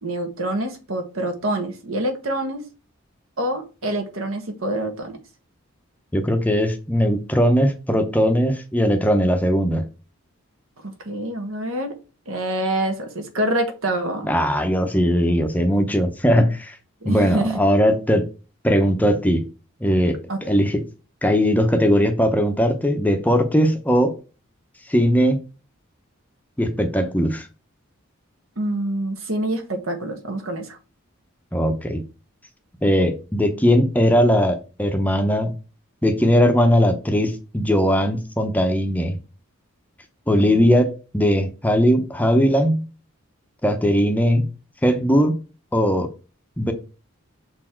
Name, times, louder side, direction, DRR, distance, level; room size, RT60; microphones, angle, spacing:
voice 1, 0.0-2.6 3.4-5.2 10.8-11.9 12.3-14.3 17.0-17.6 20.3-20.4 28.6-30.8 40.4-40.7, right 1 dB, 70° right, 1.4 m, -26 dB
voice 2, 6.1-9.9 14.3-16.8 17.0-18.3 18.6-19.4 19.8-20.2 20.5-20.8 21.2-24.1 24.9-25.4 26.6-27.5 31.5-32.0 32.8-35.5 36.0-39.2 40.3-42.9 43.6-44.5 44.8-45.4 45.7-46.1 46.6-46.7, equal, 5° left, 0.7 m, -19 dB
6.8 x 4.3 x 4.4 m
head